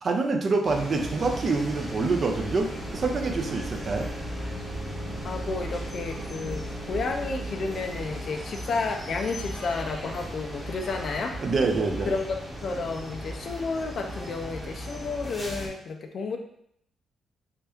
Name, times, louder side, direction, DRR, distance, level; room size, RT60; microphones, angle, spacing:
voice 1, 0.0-4.1 11.4-12.1, right 3 dB, 40° right, 3 dB, 0.5 m, -26 dB
sound 1, 0.6-15.7, equal, ahead, 0.9 m, -36 dB
sound 2, 1.1-8.8, right 2 dB, 75° right, 1.0 m, -43 dB
voice 2, 5.2-11.4 12.1-12.2 12.6-16.4, left 4 dB, 45° left, 4 dB, 0.4 m, -31 dB
3.4 x 2.8 x 3.4 m, 0.71 s
cardioid pair, 140°, 0 cm